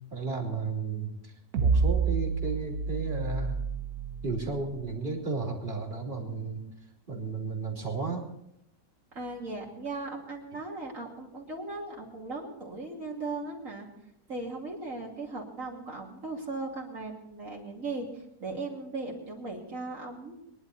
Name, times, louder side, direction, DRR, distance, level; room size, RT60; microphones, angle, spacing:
voice 1, 0.1-1.3 1.6-3.5 4.2-6.6 7.1-8.2, right 4 dB, 30° right, 0 dB, 2.9 m, -33 dB
sound 1, 1.5-5.0, right 5 dB, 70° right, 1.5 m, -29 dB
voice 2, 9.1-13.9 14.3-20.3, right 3 dB, 55° right, -2 dB, 3.0 m, -38 dB
23.0 x 11.0 x 4.1 m, 0.79 s
omnidirectional pair, 1.7 m